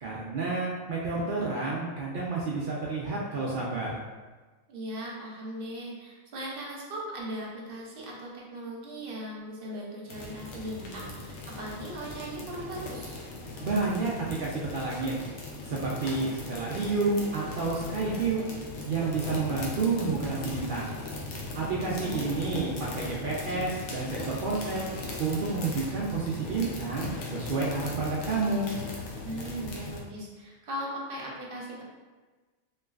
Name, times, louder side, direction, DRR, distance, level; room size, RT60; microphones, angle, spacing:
voice 1, 0.0-4.0 13.6-15.1 15.7-18.4 18.9-20.9 21.6-24.9 25.2-28.7, right 3 dB, 75° right, -5 dB, 0.4 m, -30 dB
voice 2, 4.7-13.2 21.8-22.2 29.2-31.8, right 1 dB, 50° right, -4 dB, 0.8 m, -38 dB
sound 1, 10.1-30.0, left 2 dB, 65° left, 0.8 m, -39 dB
3.1 x 3.0 x 2.3 m, 1.3 s
omnidirectional pair, 1.4 m